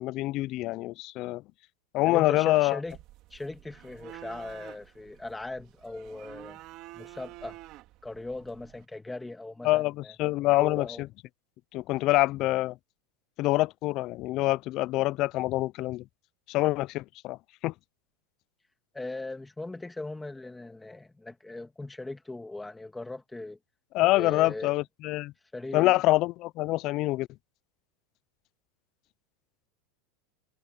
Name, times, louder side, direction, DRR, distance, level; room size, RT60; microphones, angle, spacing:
voice 1, 0.0-1.4 1.9-2.8 9.6-11.1 11.7-12.8 13.4-16.0 16.5-17.4 17.6-17.7 23.9-25.3 25.7-27.3, left 18 dB, 35° left, 0.3 m, -26 dB
voice 2, 2.0-3.0 3.3-6.6 6.9-7.6 8.0-10.1 10.6-11.0 18.9-23.6 24.1-24.7 25.5-26.0, left 2 dB, 5° left, 1.9 m, -39 dB
sound 1, 2.9-8.9, right 16 dB, 35° right, 3.8 m, -49 dB
supercardioid pair, 170°, 0 cm